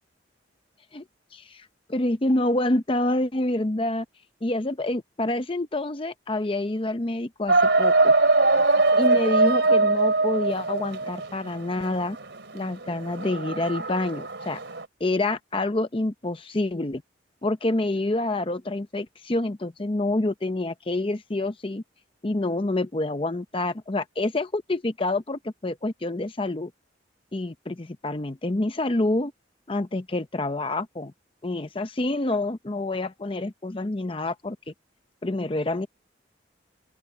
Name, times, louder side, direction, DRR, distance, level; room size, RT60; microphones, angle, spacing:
voice 1, 1.3-4.0 4.4-8.1 9.0-12.2 12.5-14.6 15.0-17.0 17.4-21.8 22.2-26.7 27.3-29.3 29.7-31.1 31.4-34.7 35.2-35.9, left 2 dB, 30° left, 0.7 m, -27 dB
sound 1, 7.5-14.9, right 3 dB, 70° right, 3.1 m, -22 dB
open air
head